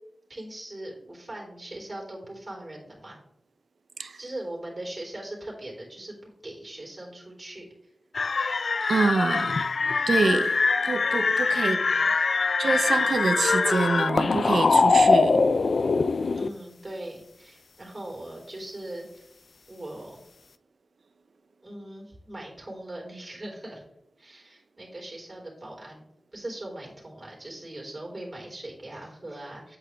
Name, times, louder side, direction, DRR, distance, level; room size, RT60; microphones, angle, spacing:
voice 1, 0.3-3.2 4.2-7.7 11.6-11.9 16.3-19.2 19.7-20.2 21.6-23.8 24.2-26.0 26.3-29.8, right 1 dB, 30° right, 3.8 m, -40 dB
sound 1, 8.1-16.5, left 4 dB, 70° left, 0.4 m, -23 dB
voice 2, 8.9-9.7 10.1-11.8 12.6-15.4, right 4 dB, 90° right, 0.6 m, -26 dB
8.8 x 8.5 x 3.4 m
wide cardioid pair, 110°, 0 cm